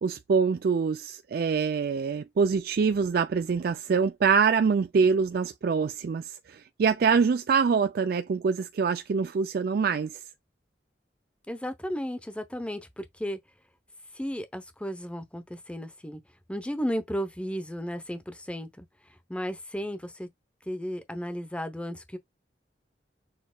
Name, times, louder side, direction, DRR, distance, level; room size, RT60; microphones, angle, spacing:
voice 1, 0.0-10.2, right 5 dB, 60° right, 0.3 m, -25 dB
voice 2, 11.5-13.4 14.1-16.2 16.5-18.8 19.3-20.3 20.7-22.2, equal, 5° left, 0.7 m, -34 dB
6.3 x 2.9 x 2.3 m
head